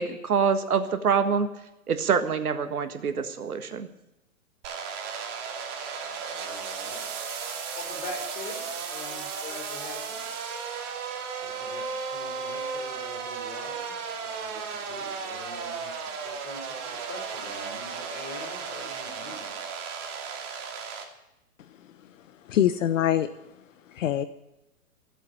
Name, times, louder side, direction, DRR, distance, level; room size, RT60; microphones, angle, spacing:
voice 1, 0.0-1.5 1.9-3.9, right 6 dB, 85° right, 9 dB, 1.6 m, -25 dB
sound 1, 4.6-21.0, right 6 dB, 35° right, 2.7 m, -35 dB
voice 2, 6.0-7.1 7.7-10.2 11.3-19.5, left 3 dB, 25° left, 0 dB, 5.6 m, -44 dB
voice 3, 21.8-23.3 23.9-24.2, left 11 dB, 60° left, 12 dB, 0.9 m, -25 dB
15.5 x 8.0 x 8.8 m, 0.94 s
hypercardioid pair, 125°, 43 cm